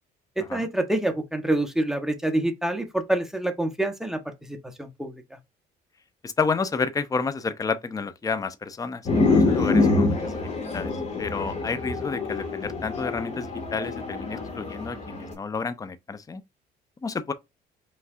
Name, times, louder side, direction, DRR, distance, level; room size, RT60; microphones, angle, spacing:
voice 1, 0.4-4.2 4.5-5.2, right 1 dB, 5° right, 1.0 m, -26 dB
voice 2, 6.2-10.9 11.2-16.4 17.0-17.3, left 4 dB, 20° left, 0.6 m, -30 dB
sound 1, 9.1-15.3, left 3 dB, 40° left, 1.9 m, -25 dB
5.6 x 3.2 x 2.4 m
cardioid pair, 110°, 17 cm